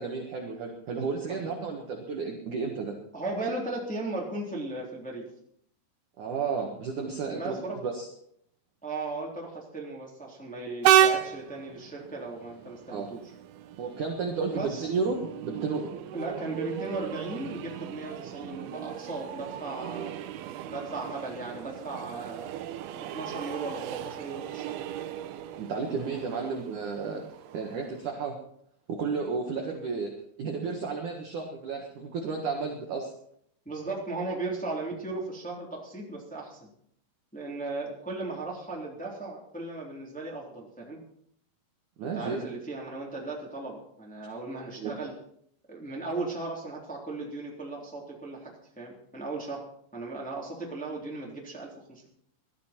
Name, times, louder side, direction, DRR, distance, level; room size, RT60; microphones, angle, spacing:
voice 1, 0.0-3.0 6.2-8.1 12.9-13.1 13.8-15.9 25.6-27.2 27.5-28.3 28.9-30.1 30.4-33.1 42.0-42.5 44.8-45.0, right 5 dB, 65° right, 2 dB, 2.0 m, -32 dB
voice 2, 3.1-5.3 7.3-7.8 8.8-13.2 14.5-14.9 16.1-20.2 20.7-22.5 23.0-24.7 26.3-26.5 33.6-36.7 37.3-41.0 42.0-45.1 45.7-48.5 48.8-49.6 49.9-52.1, right 2 dB, ahead, -2 dB, 2.2 m, -36 dB
Train, 10.8-28.1, right 11 dB, 80° right, 2.3 m, -32 dB
19.0 x 12.5 x 4.5 m, 0.68 s
omnidirectional pair, 5.7 m